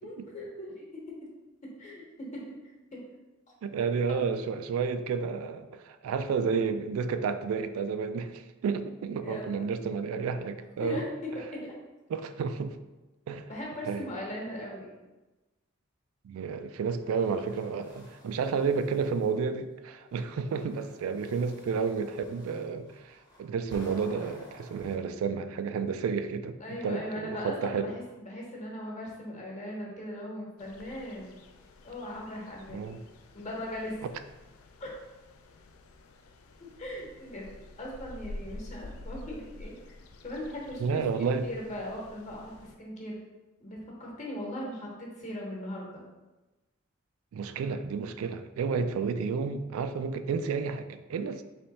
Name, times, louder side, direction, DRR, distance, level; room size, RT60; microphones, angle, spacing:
voice 1, 0.0-0.8 1.8-2.5 2.9-3.0 4.1-4.3 6.3-6.5 9.2-9.8 10.8-11.7 13.5-14.9 26.6-31.3 31.8-32.8 33.3-34.0 34.8-34.9 36.6-37.5 37.8-39.8 40.2-42.5 42.8-43.2 43.6-46.1, left 1 dB, 35° left, -3 dB, 1.1 m, -39 dB
voice 2, 3.6-11.0 12.1-12.8 13.3-13.5 13.9-14.0 16.2-26.6 26.8-27.9 32.7-33.0 40.8-41.5 47.3-51.4, right 5 dB, 80° right, 10 dB, 0.3 m, -31 dB
sound 1, 16.8-19.5 20.1-24.9, equal, 15° left, 0.8 m, -53 dB
sound 2, 30.6-42.8, left 2 dB, 75° left, 0.4 m, -49 dB
3.3 x 3.0 x 4.1 m, 1.1 s
head